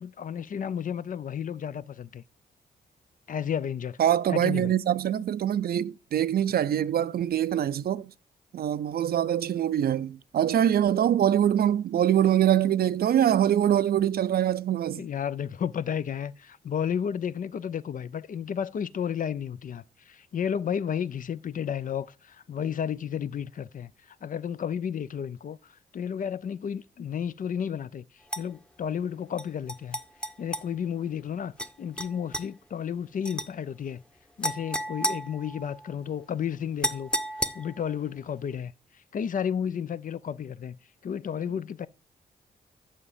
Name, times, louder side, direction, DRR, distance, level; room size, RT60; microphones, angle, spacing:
voice 1, 0.0-2.2 3.3-4.0 4.3-4.7 15.0-28.0 28.4-30.0 30.4-31.5 31.8-34.0 34.4-37.1 37.5-38.7 39.1-41.9, left 8 dB, 50° left, 0.4 m, -32 dB
voice 2, 4.0-8.1 8.5-15.0, right 10 dB, 60° right, 0.4 m, -24 dB
sound 1, 28.3-28.4 29.4-30.7 31.6-31.7 32.0-32.5 33.2-33.5 34.4-35.9 36.8-37.9, equal, 5° left, 0.9 m, -32 dB
7.3 x 5.6 x 5.0 m
supercardioid pair, 50°, 18 cm